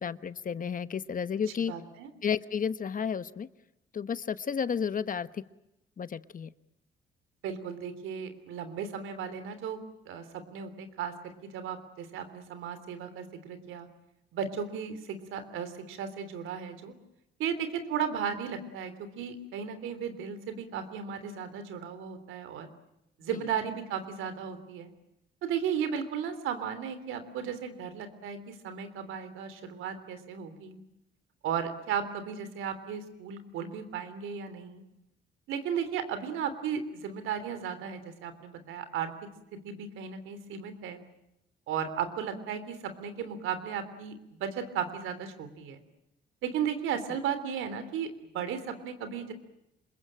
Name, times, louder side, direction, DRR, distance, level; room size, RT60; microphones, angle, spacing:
voice 1, 0.0-1.7 2.2-3.5 3.9-5.3 6.0-6.5, left 7 dB, 45° left, 14 dB, 1.1 m, -32 dB
voice 2, 1.7-2.1 7.4-9.8 10.1-10.2 10.5-13.9 14.3-16.9 17.4-22.7 23.2-24.9 25.4-30.8 31.4-34.8 35.5-39.1 39.6-41.0 41.7-45.8 46.4-48.1 48.3-49.3, right 7 dB, 90° right, 11 dB, 3.3 m, -35 dB
26.5 x 22.0 x 8.9 m, 0.86 s
cardioid pair, 90°, 20 cm